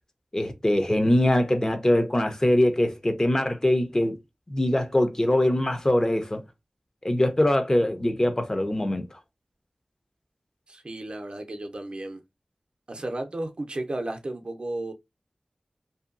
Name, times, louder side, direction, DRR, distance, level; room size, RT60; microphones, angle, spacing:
voice 1, 0.3-4.2 4.5-6.4 7.0-9.0, left 1 dB, 30° left, 0.6 m, -23 dB
voice 2, 10.7-12.2 12.9-14.9, right 1 dB, 55° right, 0.6 m, -33 dB
2.7 x 2.2 x 2.5 m
wide cardioid pair, 45°, 2 cm